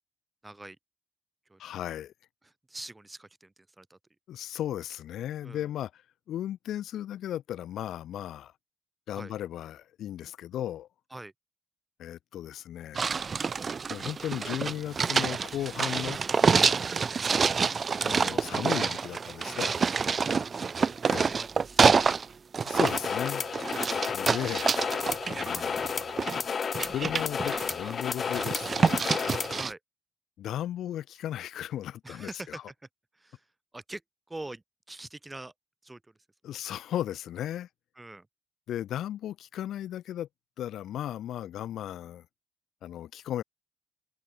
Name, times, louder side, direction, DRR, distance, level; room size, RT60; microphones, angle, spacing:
voice 1, 0.4-0.8 1.5-1.6 2.4-4.0 5.4-5.7 9.2-9.3 11.1-11.3 18.0-18.5 19.4-19.7 20.6-20.9 21.1-22.1 23.7-23.9 29.5-29.8 32.0-32.6 33.2-33.4 33.7-34.0 34.3-35.5 35.8-36.0 38.0-38.3, right 2 dB, 15° right, 3.6 m, -44 dB
voice 2, 1.6-2.1 4.3-6.0 6.3-8.5 9.1-10.9 12.0-13.1 13.9-16.2 18.0-19.8 21.0-21.4 22.6-23.5 24.1-24.8 25.4-26.2 26.9-29.1 30.4-32.6 36.4-37.7 38.7-40.3 40.6-42.2 42.8-43.4, left 11 dB, 75° left, 1.4 m, -36 dB
sound 1, 12.9-22.2 22.5-26.4 26.7-27.9 28.3-29.7, right 5 dB, 40° right, 2.0 m, -27 dB
sound 2, 22.8-29.6, left 6 dB, 45° left, 4.0 m, -32 dB
cardioid pair, 90°, 0 cm